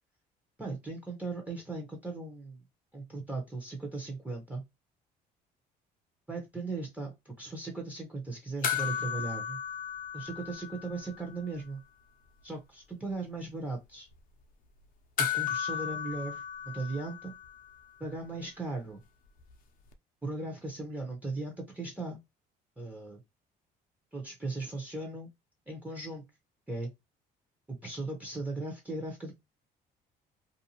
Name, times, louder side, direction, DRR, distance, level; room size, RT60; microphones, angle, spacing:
voice 1, 0.6-2.6 2.9-4.6 6.3-9.6 10.1-11.8 12.4-14.1 15.2-17.3 18.0-19.0 20.2-22.2 22.8-23.2 24.1-25.3 25.7-26.2 26.7-26.9 27.7-29.3, right 3 dB, 10° right, 0.9 m, -38 dB
sound 1, 8.6-11.3 11.6-11.7 15.2-17.8 19.9-20.0, left 8 dB, 55° left, 0.6 m, -35 dB
2.6 x 2.3 x 2.8 m
cardioid pair, 110°, 17 cm